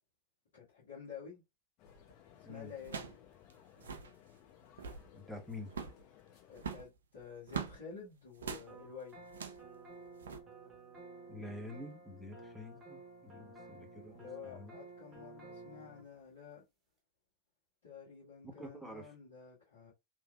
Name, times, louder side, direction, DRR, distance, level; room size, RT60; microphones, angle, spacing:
voice 1, 0.5-1.4 2.5-3.2 6.5-9.3 14.1-16.6 17.8-19.9, left 6 dB, 60° left, 1.4 m, -50 dB
sound 1, 1.8-6.8, left 11 dB, 40° left, 1.3 m, -61 dB
sound 2, 1.9-2.1 2.8-3.2 3.5-3.6 3.8-4.1 4.6-5.1 5.7-6.0 6.6-7.8 8.4-8.7 9.3-9.7 10.2-10.4, right 6 dB, 65° right, 0.4 m, -42 dB
voice 2, 5.1-5.7 11.3-14.7 18.6-19.1, left 1 dB, 5° left, 0.8 m, -48 dB
sound 3, 8.7-16.0, right 2 dB, 20° right, 1.0 m, -53 dB
3.2 x 2.5 x 2.2 m
figure-of-eight pair, 90°, 0 cm